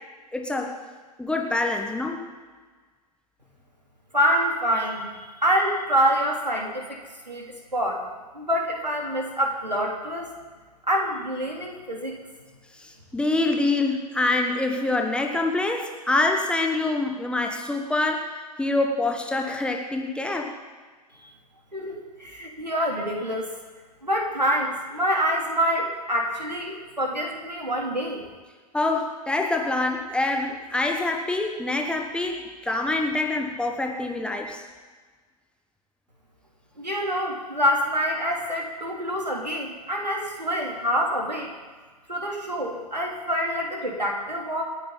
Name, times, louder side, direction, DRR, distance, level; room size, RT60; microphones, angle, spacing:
voice 1, 0.3-0.8 1.2-2.3 12.7-18.3 18.6-20.5 28.7-34.6, left 2 dB, 5° left, 2 dB, 1.5 m, -25 dB
voice 2, 4.1-7.0 7.3-7.4 7.7-8.0 8.3-10.3 10.9-12.2 21.2-21.3 21.7-23.5 24.0-28.2 36.8-41.5 42.1-44.6, equal, 85° right, 0 dB, 3.3 m, -26 dB
28.0 x 9.5 x 4.1 m, 1.4 s
figure-of-eight pair, 100°, 21 cm